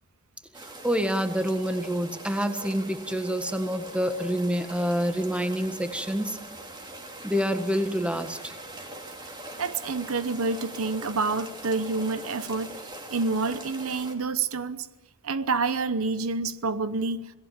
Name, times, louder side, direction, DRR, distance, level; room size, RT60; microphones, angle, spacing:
sound 1, 0.5-14.1, right 2 dB, 20° right, 2.9 m, -42 dB
voice 1, 0.8-6.4 7.2-8.5, equal, 5° right, 1.6 m, -27 dB
voice 2, 9.6-14.9 15.2-17.3, right 4 dB, 80° right, 0.9 m, -28 dB
27.0 x 18.5 x 7.3 m
head